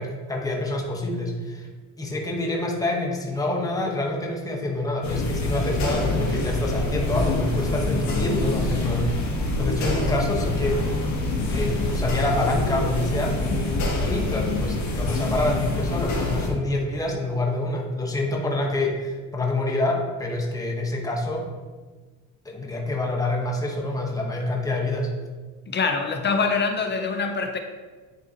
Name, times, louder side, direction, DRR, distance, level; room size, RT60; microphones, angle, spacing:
voice 1, 0.0-1.7 2.0-9.1 9.6-10.8 11.5-13.4 14.0-21.4 22.4-25.1, left 2 dB, 10° left, -1 dB, 1.1 m, -27 dB
sound 1, 5.0-16.5, left 2 dB, 50° left, 1.4 m, -25 dB
voice 2, 25.7-27.6, left 4 dB, 30° left, 6 dB, 0.6 m, -24 dB
9.2 x 3.7 x 2.9 m, 1.4 s
cardioid pair, 110°, 37 cm